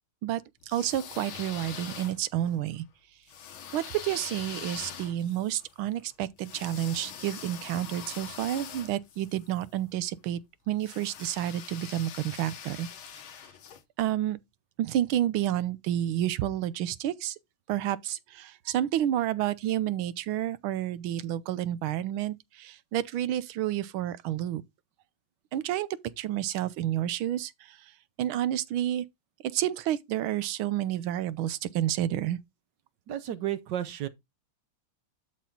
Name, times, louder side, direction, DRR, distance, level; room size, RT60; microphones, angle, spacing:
voice 1, 0.2-2.8 3.7-10.4 10.7-12.9 14.0-14.4 14.8-17.3 17.7-24.6 25.5-25.9 26.2-27.5 28.2-29.0 29.5-32.4, right 12 dB, 85° right, 1.5 m, -30 dB
sound 1, 0.6-2.5 3.3-9.6 10.8-13.8, left 8 dB, 75° left, 2.0 m, -43 dB
voice 2, 33.1-34.1, right 11 dB, 65° right, 1.4 m, -32 dB
11.5 x 4.3 x 3.7 m
omnidirectional pair, 2.2 m